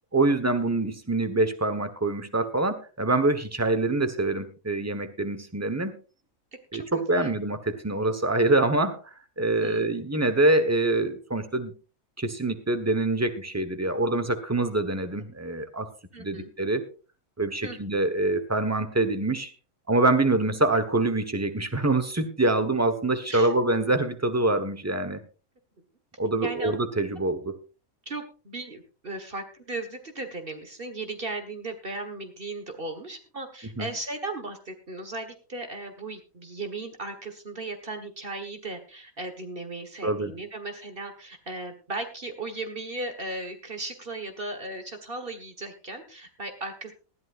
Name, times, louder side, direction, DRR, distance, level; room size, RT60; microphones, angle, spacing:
voice 1, 0.1-5.9 6.7-9.0 9.4-11.7 12.2-15.9 16.2-16.8 17.4-19.5 19.9-25.2 26.2-27.6 33.8-33.9 40.0-40.3, right 2 dB, 10° right, 9 dB, 1.2 m, -25 dB
voice 2, 6.7-7.3 9.6-10.0 16.1-16.5 17.6-18.0 23.3-23.5 26.4-26.7 28.1-46.9, right 2 dB, 40° right, 6 dB, 1.7 m, -36 dB
19.5 x 13.0 x 2.6 m, 0.36 s
omnidirectional pair, 1.5 m